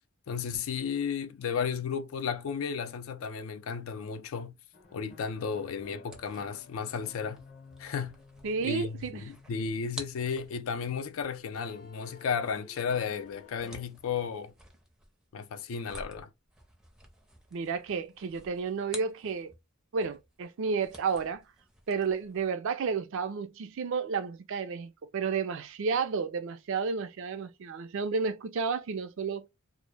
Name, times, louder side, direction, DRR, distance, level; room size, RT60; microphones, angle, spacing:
voice 1, 0.3-4.5 4.9-7.4 7.8-8.2 8.6-14.5 15.3-16.3, left 6 dB, 70° left, 0.4 m, -34 dB
sound 1, 4.7-11.3 11.5-13.8, left 5 dB, 40° left, 0.7 m, -54 dB
sound 2, 6.0-19.7 20.0-22.5, right 1 dB, 5° right, 0.5 m, -52 dB
voice 2, 8.4-9.3 17.5-19.5 19.9-21.4 21.9-29.5, right 5 dB, 65° right, 0.4 m, -32 dB
2.1 x 2.0 x 3.1 m
head